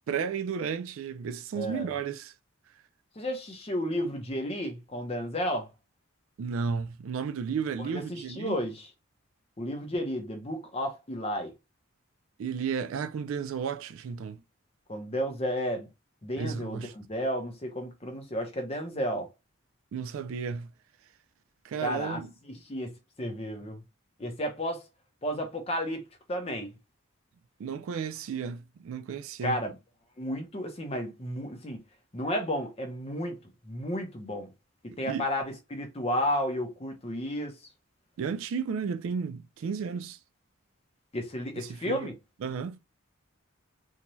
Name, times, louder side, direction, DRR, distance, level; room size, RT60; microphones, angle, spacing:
voice 1, 0.1-2.3 6.4-8.6 12.4-14.4 16.3-16.9 19.9-20.7 21.6-22.3 27.6-29.6 35.1-35.2 38.2-40.2 41.6-42.1 42.4-42.8, right 6 dB, 70° right, 0.3 m, -33 dB
voice 2, 1.5-1.9 3.2-5.7 7.8-8.9 9.6-11.5 14.9-15.9 16.2-19.3 21.8-22.9 23.2-23.8 24.2-24.9 25.2-26.7 29.4-29.7 30.2-31.8 32.1-33.4 33.7-34.5 34.8-37.6 41.1-42.1, equal, 25° left, 0.6 m, -32 dB
2.7 x 2.2 x 3.0 m
head